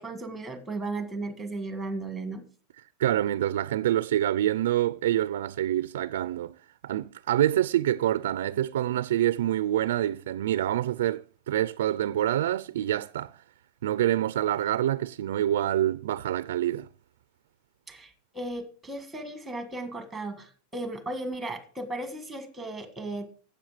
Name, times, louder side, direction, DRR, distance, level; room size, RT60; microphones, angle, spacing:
voice 1, 0.0-2.4 17.9-23.3, right 2 dB, 5° right, 1.6 m, -35 dB
voice 2, 3.0-6.6 6.8-13.3 13.8-16.9, right 12 dB, 85° right, 0.4 m, -26 dB
12.5 x 8.0 x 5.0 m
supercardioid pair, 175°, 0 cm